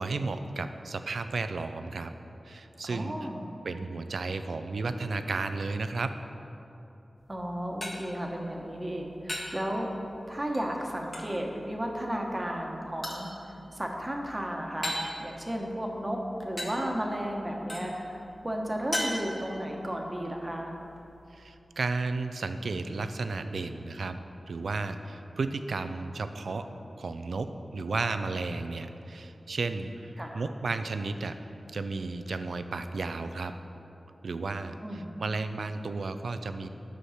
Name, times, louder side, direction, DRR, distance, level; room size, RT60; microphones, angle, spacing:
voice 1, 0.0-2.1 2.4-3.1 3.6-6.2 21.3-24.2 24.5-26.7 27.0-31.4 31.7-33.5 34.2-36.7, right 3 dB, 85° right, 9 dB, 0.4 m, -33 dB
voice 2, 2.8-3.5 7.3-9.9 10.3-20.7 30.2-30.4 34.8-35.1, equal, 20° right, 0 dB, 1.2 m, -34 dB
sound 1, 7.2-21.5, left 1 dB, 30° left, 1.6 m, -41 dB
8.3 x 6.3 x 5.8 m, 2.9 s
wide cardioid pair, 75°, 0 cm